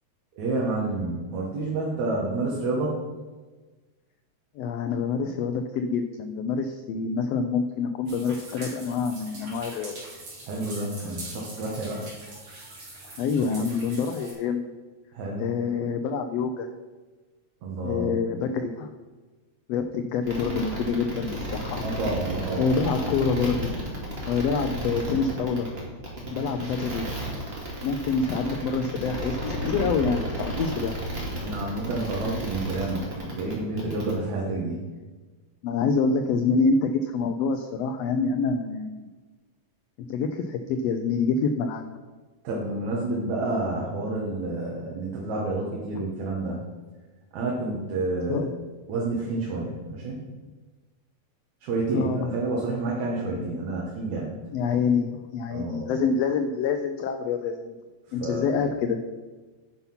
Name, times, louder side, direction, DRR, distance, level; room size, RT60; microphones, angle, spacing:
voice 1, 0.4-3.0 10.5-12.0 15.1-15.4 17.6-18.2 21.8-22.7 31.4-34.8 42.4-46.6 47.3-48.5 48.9-50.2 51.6-54.3 55.5-55.9 58.2-58.6, right 2 dB, 75° right, -3 dB, 2.6 m, -29 dB
voice 2, 4.6-9.9 13.2-14.7 15.4-16.7 17.8-18.9 19.7-21.8 22.6-23.7 24.3-25.7 26.3-27.2 27.8-31.0 35.6-39.0 40.1-41.8 48.3-48.5 51.9-52.3 54.5-57.7 58.1-59.0, left 5 dB, 80° left, 7 dB, 1.5 m, -26 dB
sound 1, 8.1-14.3, right 2 dB, 45° right, 3.4 m, -42 dB
sound 2, 20.2-34.1, right 1 dB, 25° right, 1.9 m, -33 dB
9.7 x 5.7 x 5.8 m, 1.3 s
omnidirectional pair, 3.4 m